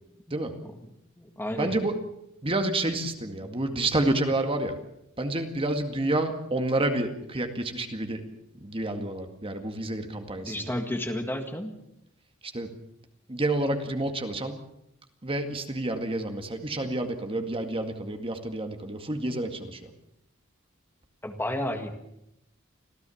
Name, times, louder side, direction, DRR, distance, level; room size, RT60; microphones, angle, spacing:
voice 1, 0.3-0.9 1.2-1.8 10.4-11.7 21.2-22.0, left 1 dB, 10° left, 5 dB, 1.8 m, -32 dB
voice 2, 1.5-1.9 2.4-4.8 5.2-8.2 8.5-10.7 12.4-12.7 13.3-14.6 15.2-19.9, right 2 dB, 25° right, 6 dB, 2.1 m, -29 dB
26.0 x 16.0 x 7.2 m, 0.80 s
head